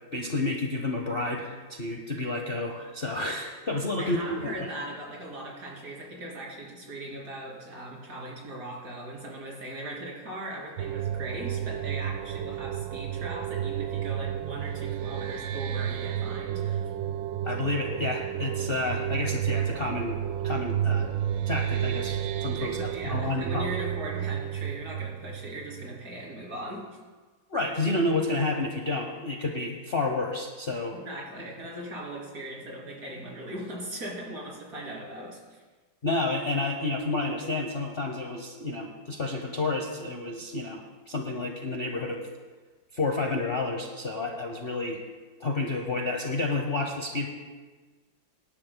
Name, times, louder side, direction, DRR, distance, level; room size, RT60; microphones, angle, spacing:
voice 1, 0.1-4.5 17.4-20.2 20.4-21.1 21.5-22.8 23.0-23.7 27.5-31.0 36.0-42.2 42.9-45.0 45.4-47.3, left 2 dB, 40° left, 1 dB, 0.8 m, -30 dB
voice 2, 4.0-16.9 22.6-26.9 30.9-35.6, right 1 dB, 50° right, -3 dB, 3.4 m, -39 dB
sound 1, 10.8-26.2, right 10 dB, 85° right, 1.3 m, -31 dB
24.5 x 11.0 x 2.2 m, 1.4 s
omnidirectional pair, 2.0 m